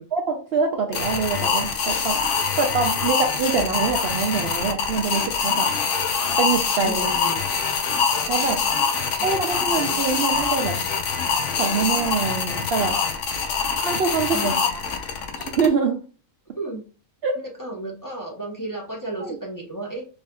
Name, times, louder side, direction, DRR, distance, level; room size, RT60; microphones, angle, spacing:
voice 1, 0.1-2.2 2.6-5.7 6.1-7.0 8.3-8.6 9.2-10.8 11.6-13.0 13.8-14.5 15.4-16.0 17.2-17.3 19.2-19.4, right 5 dB, 60° right, 3 dB, 0.7 m, -24 dB
sound 1, 0.9-15.7, left 5 dB, 70° left, 1.0 m, -24 dB
voice 2, 6.8-7.4 8.8-10.0 14.3-14.7 16.6-16.8 17.3-20.0, right 1 dB, 15° left, -3 dB, 0.9 m, -34 dB
4.6 x 3.3 x 2.2 m, 0.36 s
omnidirectional pair, 1.4 m